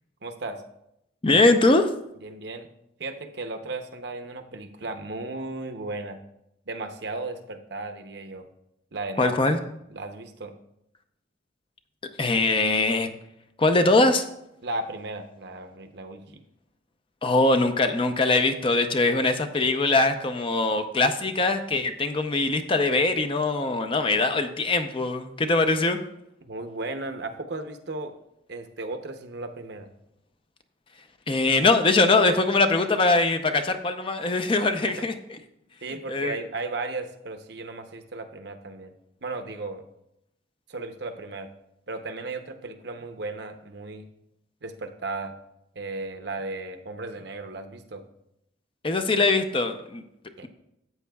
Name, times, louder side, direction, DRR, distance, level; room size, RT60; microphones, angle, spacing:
voice 1, 0.2-0.6 2.2-2.7 3.0-6.2 6.7-8.5 8.9-9.3 9.9-10.5 14.6-16.4 26.5-28.2 28.5-29.9 35.0-35.1 35.8-38.9 39.2-39.8 40.7-41.5 41.9-44.1 44.6-45.3 45.8-48.0 50.4-50.5, right 2 dB, 60° right, 6 dB, 0.8 m, -35 dB
voice 2, 1.2-1.9 9.2-9.6 12.2-13.1 13.6-14.3 17.2-26.0 31.3-35.1 36.1-36.3 48.8-50.0, left 2 dB, 30° left, 8 dB, 0.6 m, -22 dB
13.5 x 8.3 x 2.3 m, 0.81 s
head